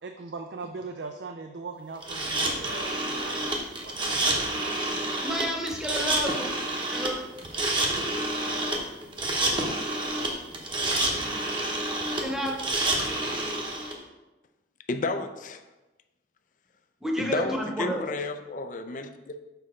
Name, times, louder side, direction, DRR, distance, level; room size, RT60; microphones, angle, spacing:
voice 1, 0.0-4.8, right 4 dB, 80° right, 0.5 m, -40 dB
sound 1, 2.0-13.9, right 2 dB, 25° right, 0.9 m, -28 dB
voice 2, 4.9-6.5 6.9-7.1 12.2-12.5 17.0-18.0, equal, 5° right, 0.9 m, -30 dB
voice 3, 14.9-15.6 17.2-19.4, left 3 dB, 45° left, 0.5 m, -32 dB
6.9 x 5.4 x 3.7 m
head